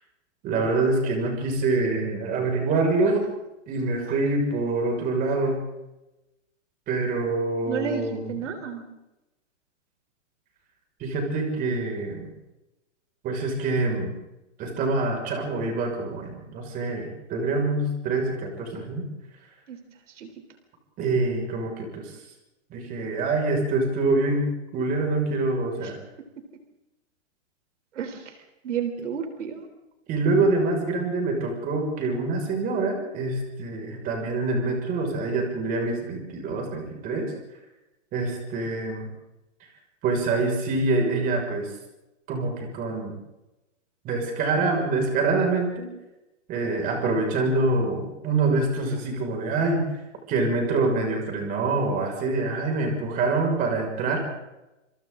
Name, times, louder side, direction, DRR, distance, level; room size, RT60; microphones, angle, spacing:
voice 1, 0.4-3.2 3.7-5.6 6.9-8.4 11.0-12.3 13.2-14.1 14.6-19.1 21.0-22.2 22.7-24.4 24.7-26.0 30.1-37.3 38.1-39.1 40.0-41.7 42.3-43.2 44.0-45.9 46.5-49.8 50.3-54.3, right 3 dB, 20° right, 2 dB, 5.9 m, -25 dB
voice 2, 7.7-8.8 19.7-19.8 20.2-20.3 25.8-25.9 28.0-28.3 28.6-29.6, right 7 dB, 70° right, 6 dB, 3.9 m, -31 dB
28.5 x 27.5 x 3.9 m, 0.97 s
hypercardioid pair, 165°, 37 cm